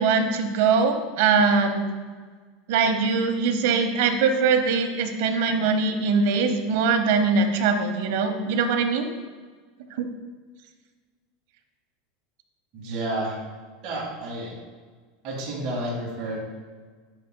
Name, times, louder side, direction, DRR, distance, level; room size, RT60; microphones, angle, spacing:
voice 1, 0.0-1.8 2.7-9.1 10.0-10.1, right 5 dB, 65° right, 5 dB, 0.8 m, -22 dB
voice 2, 12.7-13.4 13.8-14.5 15.2-16.4, right 1 dB, 35° right, -6 dB, 1.9 m, -30 dB
11.5 x 4.7 x 2.2 m, 1.5 s
supercardioid pair, 165°, 0 cm